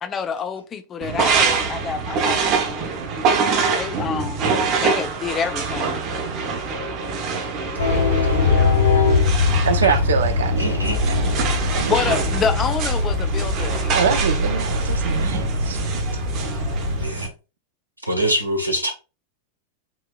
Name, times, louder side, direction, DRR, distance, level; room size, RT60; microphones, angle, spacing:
voice 1, 0.0-2.9 3.6-4.5 4.8-6.0 7.9-9.2 11.9-14.1, left 6 dB, 25° left, 0.6 m, -28 dB
sound 1, 1.0-17.3, right 5 dB, 40° right, 1.0 m, -25 dB
sound 2, 7.8-17.1, left 3 dB, 70° left, 1.7 m, -22 dB
voice 2, 9.6-12.0 13.9-15.8, right 7 dB, 65° right, 0.6 m, -25 dB
voice 3, 10.6-11.2 17.0-17.3 18.1-18.9, right 1 dB, 85° right, 1.3 m, -24 dB
6.0 x 2.8 x 2.3 m
figure-of-eight pair, 90°, 0 cm